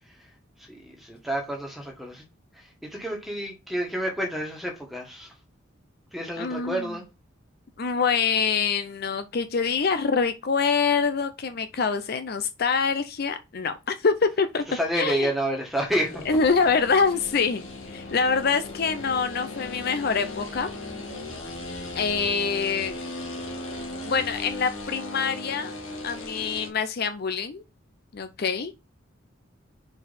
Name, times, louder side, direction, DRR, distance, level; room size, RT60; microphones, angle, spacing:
voice 1, 0.6-2.2 2.5-5.4 6.1-7.1 14.7-16.3, right 1 dB, ahead, 1.7 m, -30 dB
voice 2, 6.4-6.8 7.8-14.6 15.0-15.3 16.3-17.6 17.9-20.7 21.9-23.0 24.0-25.7 26.0-27.6 28.1-28.7, left 5 dB, 50° left, 0.5 m, -25 dB
sound 1, 15.9-26.7, left 2 dB, 80° left, 1.9 m, -37 dB
5.4 x 4.7 x 4.2 m
head